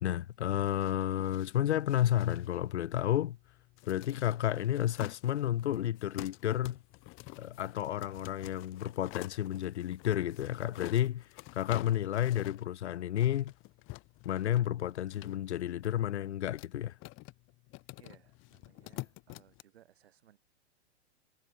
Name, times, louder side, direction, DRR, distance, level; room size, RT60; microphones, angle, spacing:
voice 1, 0.0-3.4 3.9-6.8 7.4-13.5 14.2-17.0, left 12 dB, 80° left, 0.6 m, -31 dB
sound 1, 0.6-19.6, left 23 dB, 35° left, 2.6 m, -49 dB
voice 2, 18.0-20.4, right 11 dB, 65° right, 3.7 m, -62 dB
hypercardioid pair, 115°, 33 cm